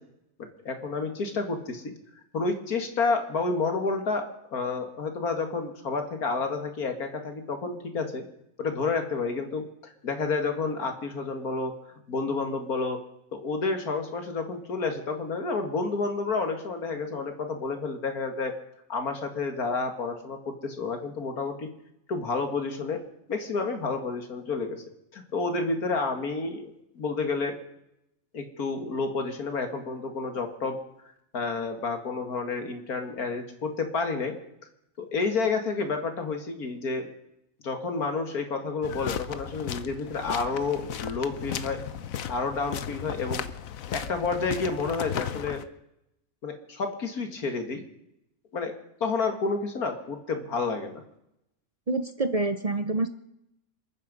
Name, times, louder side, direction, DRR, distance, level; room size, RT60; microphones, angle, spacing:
voice 1, 0.4-1.9 2.3-8.3 8.6-11.7 12.1-13.0 13.3-18.5 18.9-21.7 22.1-23.0 23.3-24.8 25.1-27.6 28.3-30.8 31.3-34.3 35.0-37.1 37.6-41.8 42.3-43.4 43.9-45.6 46.4-47.8 48.5-48.7 49.0-51.0, left 4 dB, 85° left, 6 dB, 2.6 m, -30 dB
sound 1, 38.8-45.6, left 9 dB, 70° left, 1.2 m, -35 dB
voice 2, 51.9-53.1, right 2 dB, 40° right, 10 dB, 0.6 m, -27 dB
28.0 x 9.5 x 5.3 m, 0.83 s
omnidirectional pair, 1.5 m